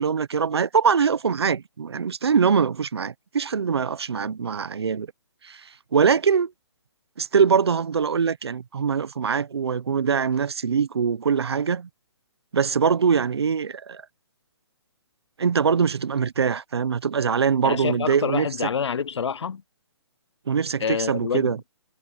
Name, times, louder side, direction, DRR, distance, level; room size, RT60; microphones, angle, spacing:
voice 1, 0.0-5.1 5.5-5.6 5.9-6.5 7.2-11.9 12.5-14.0 15.4-18.5 20.5-21.6, right 6 dB, 60° right, 1.0 m, -23 dB
voice 2, 17.6-19.6 20.8-21.6, left 6 dB, 70° left, 0.6 m, -27 dB
hypercardioid pair, 180°, 15 cm